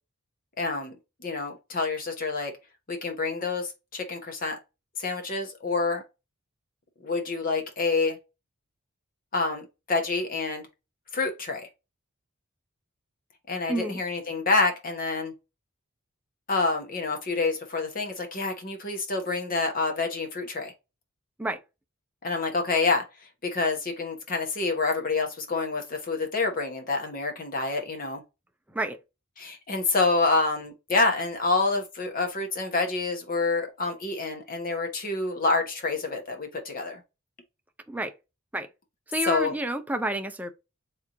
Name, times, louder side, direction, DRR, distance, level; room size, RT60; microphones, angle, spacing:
voice 1, 0.6-1.0 1.2-2.5 2.9-4.6 5.0-6.0 7.0-8.2 9.3-10.6 11.1-11.7 13.5-15.3 16.5-20.7 22.2-23.0 23.4-28.2 29.4-37.0 39.3-39.5, left 3 dB, 40° left, 1.1 m, -27 dB
voice 2, 39.1-40.5, right 1 dB, 5° right, 0.5 m, -29 dB
3.5 x 2.9 x 3.7 m
head